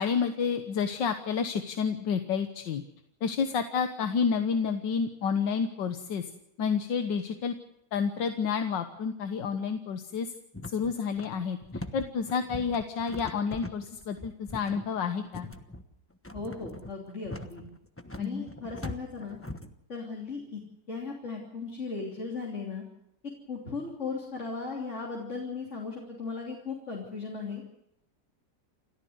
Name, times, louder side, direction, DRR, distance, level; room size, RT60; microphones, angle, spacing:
voice 1, 0.0-2.8 3.2-6.3 6.6-7.6 7.9-10.3 10.7-15.5 18.2-18.4, left 6 dB, 85° left, 7 dB, 1.9 m, -30 dB
sound 1, 10.5-19.7, left 1 dB, 10° left, 0.9 m, -41 dB
voice 2, 16.3-17.6 18.2-19.4 19.9-20.6 20.9-22.8 23.5-27.6, left 4 dB, 40° left, -1 dB, 3.6 m, -37 dB
29.0 x 14.0 x 7.9 m, 0.78 s
omnidirectional pair, 1.9 m